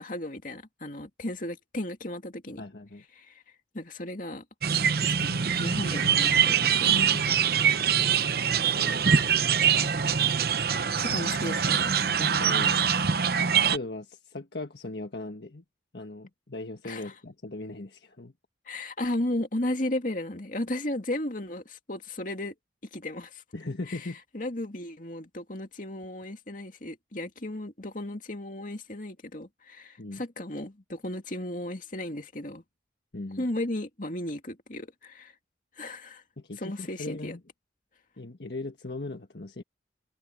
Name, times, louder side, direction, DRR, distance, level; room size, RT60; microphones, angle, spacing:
voice 1, 0.0-2.7 3.1-3.4 3.7-4.4 5.0-7.2 11.0-11.9 16.8-17.1 18.7-22.5 22.9-23.4 23.9-32.6 33.4-35.3 35.8-36.2 36.6-37.4, left 1 dB, 45° left, 2.5 m, -35 dB
voice 2, 2.6-3.0 6.8-7.4 8.4-9.5 12.2-13.0 13.7-15.6 15.9-18.3 23.5-24.2 30.0-30.2 33.1-33.5 36.4-37.4 38.2-39.6, left 2 dB, 65° left, 1.6 m, -38 dB
sound 1, 4.6-13.8, right 7 dB, 55° right, 0.8 m, -24 dB
head